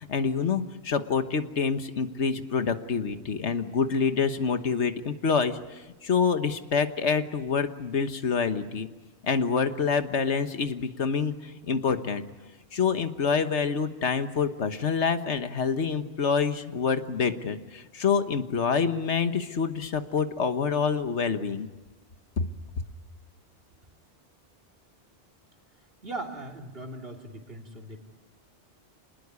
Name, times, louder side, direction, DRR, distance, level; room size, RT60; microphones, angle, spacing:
voice 1, 0.1-8.9 9.2-12.2 12.7-21.7, left 5 dB, 75° left, 9 dB, 1.6 m, -27 dB
voice 2, 26.0-28.0, right 2 dB, 55° right, 2 dB, 3.3 m, -39 dB
27.0 x 20.0 x 9.6 m, 1.1 s
omnidirectional pair, 1.2 m